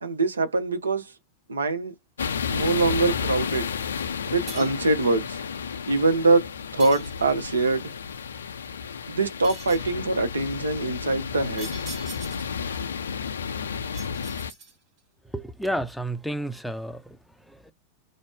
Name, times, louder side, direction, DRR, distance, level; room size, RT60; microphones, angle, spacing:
voice 1, 0.0-1.1 1.5-1.9 2.5-3.7 4.3-5.4 5.9-7.9 9.1-11.8, right 3 dB, 75° right, 0.7 m, -24 dB
sound 1, 2.2-14.5, left 6 dB, 70° left, 0.4 m, -32 dB
sound 2, 4.5-4.9 6.8-7.6 9.4-10.0 11.6-12.6 13.9-15.0, right 3 dB, 35° right, 1.3 m, -42 dB
voice 2, 15.3-17.7, right 1 dB, ahead, 0.5 m, -32 dB
2.5 x 2.0 x 3.4 m
figure-of-eight pair, 90°, 0 cm